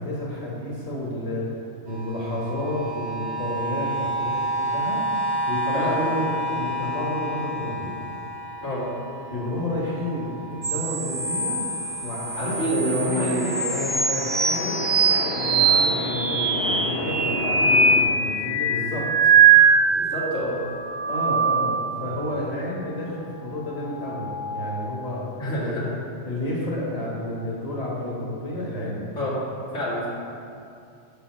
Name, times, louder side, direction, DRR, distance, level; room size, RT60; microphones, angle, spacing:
voice 1, 0.0-1.5 1.8-7.9 9.3-11.6 12.0-14.8 15.3-19.3 21.1-25.2 25.5-25.9 26.2-29.1, left 1 dB, 30° left, -5 dB, 1.5 m, -31 dB
sound 1, 1.9-12.9 13.2-17.9 18.5-18.6, right 1 dB, 70° right, 1.2 m, -32 dB
sound 2, 10.6-20.2 20.6-22.0 23.8-25.0, right 5 dB, 30° right, 1.0 m, -22 dB
sound 3, 11.6-18.0, left 2 dB, 60° left, 1.0 m, -33 dB
voice 2, 12.3-13.7 17.6-17.9 20.0-20.6 25.4-25.8 29.2-29.3 29.7-30.1, equal, 85° left, -8 dB, 2.5 m, -27 dB
6.8 x 5.7 x 6.0 m, 2.5 s
omnidirectional pair, 1.2 m